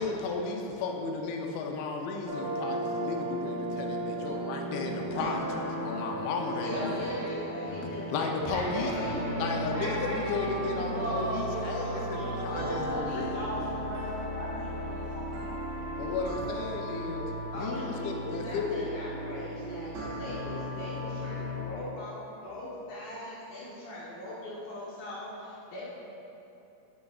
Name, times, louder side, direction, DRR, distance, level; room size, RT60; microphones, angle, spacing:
voice 1, 0.0-7.1 7.7-8.9 9.4-13.5 16.0-18.8, left 4 dB, 85° left, 2 dB, 3.0 m, -34 dB
sound 1, 2.3-21.6, right 1 dB, 80° right, 3.4 m, -35 dB
voice 2, 5.6-6.1 6.6-9.7 17.5-25.9, left 1 dB, 70° left, -8 dB, 2.5 m, -41 dB
voice 3, 6.6-7.5 8.5-15.6, right 1 dB, 65° right, -10 dB, 2.3 m, -37 dB
9.8 x 8.5 x 2.4 m, 2.9 s
omnidirectional pair, 5.3 m